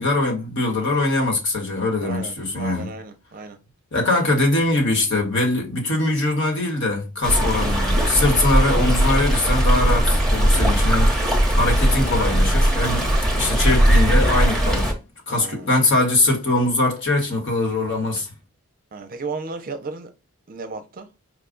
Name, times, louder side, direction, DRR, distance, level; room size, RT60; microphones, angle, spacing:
voice 1, 0.0-2.9 3.9-11.2 11.5-13.1 13.3-14.9 15.3-18.3, left 2 dB, 55° left, 1.4 m, -22 dB
voice 2, 2.0-3.6 15.3-15.7 18.9-20.1 20.5-21.1, right 4 dB, 40° right, 0.5 m, -34 dB
Stream, 7.2-14.9, equal, ahead, 0.9 m, -19 dB
4.8 x 2.3 x 3.7 m
head